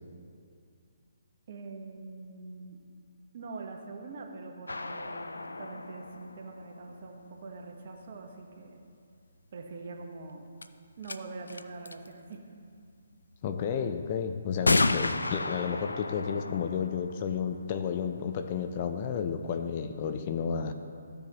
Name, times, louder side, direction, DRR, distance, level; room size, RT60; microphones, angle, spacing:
voice 1, 1.5-2.8 3.3-8.8 9.5-10.5 11.0-12.4, right 3 dB, 50° right, 2 dB, 1.2 m, -44 dB
sound 1, 4.7-7.4 10.0-10.1 10.6-10.7 11.0-11.2 11.5-12.1 13.3-13.4 14.7-18.2, left 2 dB, 90° left, 0.4 m, -32 dB
voice 2, 13.4-20.7, left 7 dB, 40° left, 8 dB, 0.5 m, -32 dB
14.0 x 6.9 x 3.0 m, 2.3 s
hypercardioid pair, 145°, 0 cm